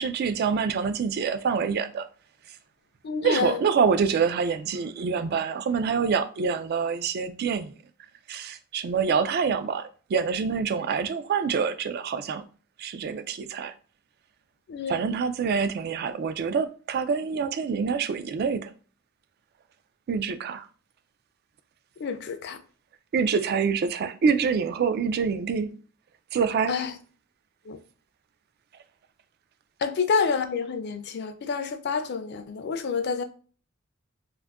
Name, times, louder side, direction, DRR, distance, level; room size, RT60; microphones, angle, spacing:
voice 1, 0.0-2.0 3.2-7.7 8.3-12.4 12.8-13.7 14.9-18.7 20.1-20.7 23.1-25.7 26.3-26.7, right 6 dB, 50° right, 0.3 m, -26 dB
voice 2, 3.0-3.6 14.7-15.1 22.0-22.6 26.7-26.9 27.7-27.8 29.8-33.2, left 5 dB, 55° left, 0.4 m, -28 dB
2.5 x 2.4 x 3.5 m
head